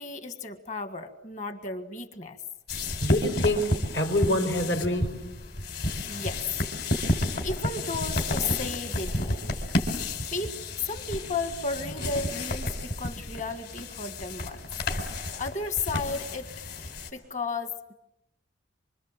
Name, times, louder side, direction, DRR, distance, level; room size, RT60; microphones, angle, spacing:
voice 1, 0.0-2.4 6.1-6.4 7.4-9.4 10.3-14.6 15.4-16.5 16.8-17.9, left 3 dB, 40° left, 8 dB, 1.8 m, -34 dB
sound 1, 2.7-17.1, left 1 dB, 55° left, 4.0 m, -31 dB
voice 2, 3.0-5.3, left 1 dB, 70° left, 5 dB, 5.1 m, -26 dB
26.5 x 26.0 x 7.6 m, 0.89 s
head